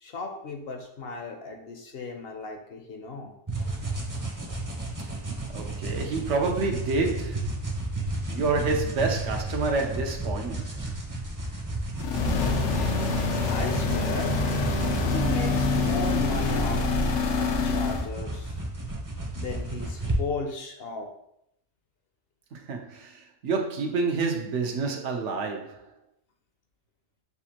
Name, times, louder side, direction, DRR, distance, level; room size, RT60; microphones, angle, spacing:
voice 1, 0.0-3.3 13.4-14.4 15.1-16.9 17.2-18.5 19.3-21.1, left 3 dB, 65° left, 0.9 m, -36 dB
sound 1, 3.5-20.2, right 2 dB, 20° right, 0.5 m, -33 dB
voice 2, 5.5-7.4 8.3-10.6 22.5-25.8, right 3 dB, 80° right, 1.0 m, -28 dB
sound 2, 12.0-18.1, left 3 dB, 90° left, 1.0 m, -26 dB
6.9 x 2.5 x 2.8 m
omnidirectional pair, 1.2 m